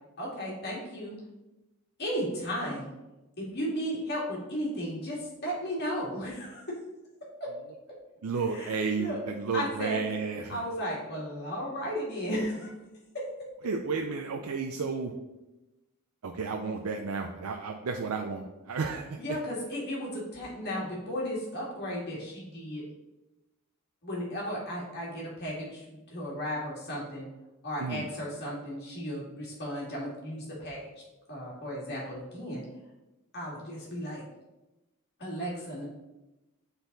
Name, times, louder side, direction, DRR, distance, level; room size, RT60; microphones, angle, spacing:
voice 1, 0.2-1.2 2.0-2.9 3.4-6.8 7.4-7.5 7.9-8.0 8.5-9.2 9.5-10.0 10.5-12.7 13.1-13.5 19.2-22.8 24.0-27.3 27.6-30.8 31.3-32.6 33.3-34.2 35.2-35.8, equal, 45° left, -4 dB, 2.2 m, -35 dB
voice 2, 8.2-10.6 13.6-15.1 16.2-19.2 27.8-28.0, right 4 dB, 75° right, 3 dB, 0.5 m, -32 dB
8.0 x 4.1 x 3.9 m, 1.0 s
head